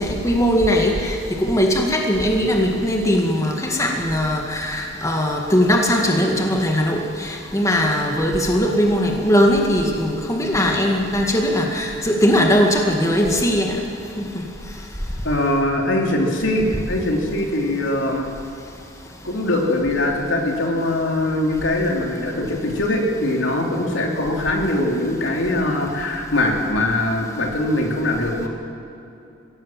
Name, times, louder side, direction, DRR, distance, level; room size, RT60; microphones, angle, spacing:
voice 1, 0.0-13.8 14.2-14.4, equal, 15° left, 1 dB, 2.0 m, -19 dB
voice 2, 15.2-18.3 19.2-28.5, left 1 dB, 70° left, 1 dB, 3.3 m, -22 dB
22.0 x 17.0 x 7.5 m, 2.8 s
head